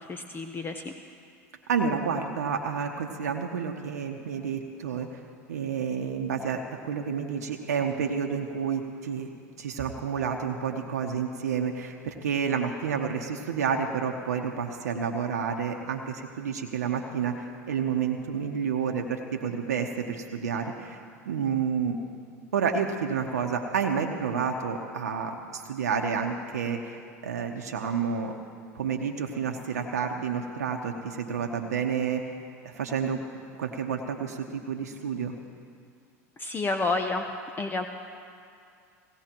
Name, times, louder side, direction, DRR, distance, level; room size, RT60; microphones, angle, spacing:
voice 1, 0.1-0.9 36.4-37.2 37.6-37.9, left 3 dB, 25° left, 5 dB, 0.8 m, -29 dB
voice 2, 1.7-5.2 5.5-9.3 9.6-21.0 21.3-22.0 22.5-28.3 28.7-32.3 32.6-33.2 33.5-35.3, right 6 dB, 85° right, 3 dB, 0.9 m, -30 dB
17.5 x 17.0 x 3.0 m, 2.4 s
hypercardioid pair, 85°, 8 cm